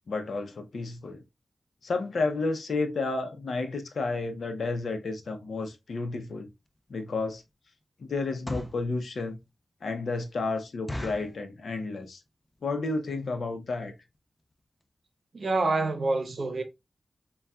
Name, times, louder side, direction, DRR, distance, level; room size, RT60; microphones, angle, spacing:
voice 1, 0.1-1.2 1.8-6.5 6.9-7.4 8.0-9.4 9.8-12.2 12.6-13.9, left 3 dB, 80° left, 0.7 m, -31 dB
Golpe mesa, 6.7-6.8 7.3-7.5 8.2-8.9 9.4-9.5 9.8-9.9 10.3-10.4 10.9-11.4 12.0-12.3 12.5-12.6 12.9-13.1 13.7-13.8 14.0-14.2 14.5-14.6 14.8-14.9, left 1 dB, 15° left, 0.5 m, -37 dB
voice 2, 15.3-16.6, right 3 dB, 60° right, 0.7 m, -27 dB
5.4 x 2.3 x 2.3 m
wide cardioid pair, 110°, 0 cm